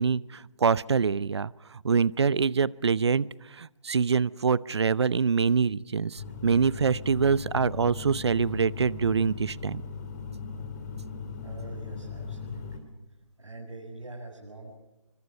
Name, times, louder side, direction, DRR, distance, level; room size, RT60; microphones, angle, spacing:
voice 1, 0.0-1.5 1.8-3.3 3.5-9.8, right 5 dB, 55° right, 21 dB, 0.8 m, -25 dB
sound 1, 6.2-12.8, left 5 dB, 35° left, 4.1 m, -38 dB
voice 2, 11.4-12.9 13.4-14.8, right 2 dB, 70° right, 0 dB, 7.2 m, -44 dB
28.0 x 24.5 x 5.4 m, 0.98 s
figure-of-eight pair, 145°, 16 cm